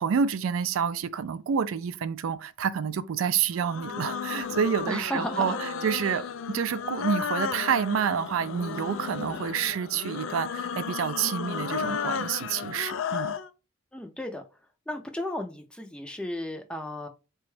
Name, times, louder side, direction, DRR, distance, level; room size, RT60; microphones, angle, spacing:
voice 1, 0.0-13.3, right 7 dB, 85° right, 0.3 m, -28 dB
sound 1, 3.6-13.5, left 6 dB, 70° left, 0.4 m, -34 dB
voice 2, 4.9-5.6 6.0-6.1 13.9-14.4 14.9-17.1, left 1 dB, 5° left, 0.4 m, -34 dB
3.9 x 2.2 x 3.1 m
head